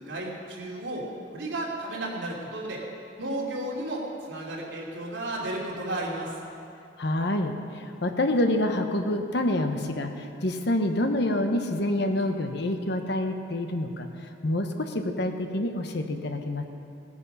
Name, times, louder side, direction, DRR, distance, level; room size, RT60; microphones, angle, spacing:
voice 1, 0.0-2.8 3.2-6.4, right 1 dB, 75° right, -4 dB, 3.0 m, -33 dB
voice 2, 7.0-14.1 14.4-16.6, left 1 dB, 60° left, 5 dB, 1.1 m, -27 dB
18.0 x 9.9 x 5.6 m, 2.6 s
head